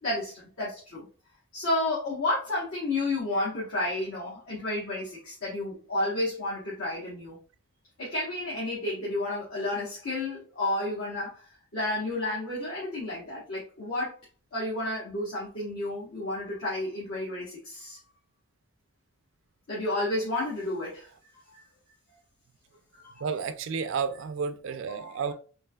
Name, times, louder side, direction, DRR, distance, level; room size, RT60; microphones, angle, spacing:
voice 1, 0.0-1.1 1.5-7.4 8.0-14.1 14.5-18.0 19.7-21.1 21.5-21.6 22.9-23.2 24.9-25.2, left 2 dB, 65° left, 1.0 m, -31 dB
voice 2, 23.2-25.3, right 5 dB, 55° right, 0.3 m, -31 dB
3.2 x 3.1 x 2.2 m
head